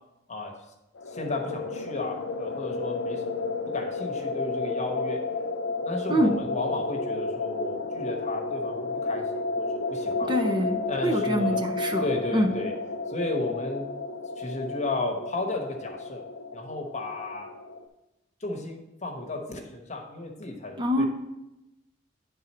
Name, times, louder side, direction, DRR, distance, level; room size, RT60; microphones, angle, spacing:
sound 1, 1.0-17.9, left 3 dB, 85° left, 0.6 m, -32 dB
voice 1, 1.1-5.2 5.8-10.5 10.9-11.6 12.0-12.7 13.1-13.9 14.4-16.2 16.5-17.5 18.4-21.1, left 2 dB, 40° left, 2 dB, 1.0 m, -33 dB
voice 2, 10.3-12.0 12.3-12.5 20.8-21.1, equal, 25° right, 4 dB, 0.5 m, -25 dB
10.0 x 3.8 x 4.2 m, 0.97 s
head